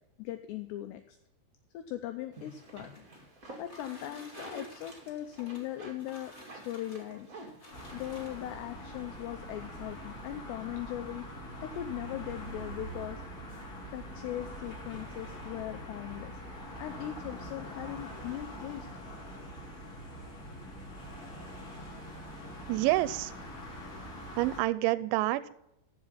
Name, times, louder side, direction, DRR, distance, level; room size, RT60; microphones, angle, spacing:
voice 1, 0.2-1.2 1.7-2.9 3.6-7.3 7.9-11.3 11.6-13.2 13.9-16.3 16.8-18.9, left 13 dB, 85° left, 8 dB, 2.4 m, -39 dB
sound 1, 2.3-10.3, right 2 dB, 55° right, 0.9 m, -51 dB
sound 2, 2.5-8.7 9.5-9.6 10.0-10.1 10.5-10.8, left 1 dB, 45° left, 0.8 m, -53 dB
sound 3, 7.7-24.6, equal, 25° left, 2.5 m, -44 dB
voice 2, 22.7-23.3 24.4-25.5, right 17 dB, 80° right, 16 dB, 2.9 m, -28 dB
14.5 x 5.5 x 5.6 m, 0.81 s
omnidirectional pair, 5.7 m